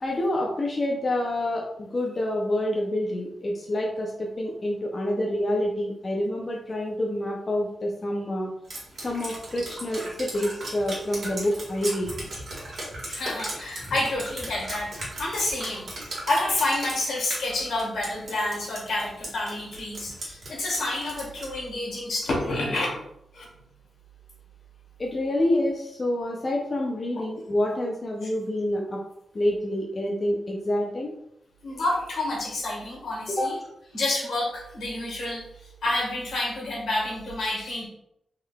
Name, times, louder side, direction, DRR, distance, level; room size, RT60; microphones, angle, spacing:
voice 1, 0.0-8.5 9.0-12.1 25.0-29.0 29.3-31.1 33.3-33.5, left 1 dB, 30° left, -1 dB, 0.4 m, -27 dB
Drip, 8.7-21.6, right 1 dB, 60° right, 1.5 m, -37 dB
voice 2, 13.1-14.9 15.2-15.9 16.3-22.9 23.3-23.5 31.6-33.6 33.9-37.9, left 2 dB, 80° left, -3 dB, 1.3 m, -29 dB
3.7 x 3.3 x 2.2 m, 0.78 s
wide cardioid pair, 130°, 0 cm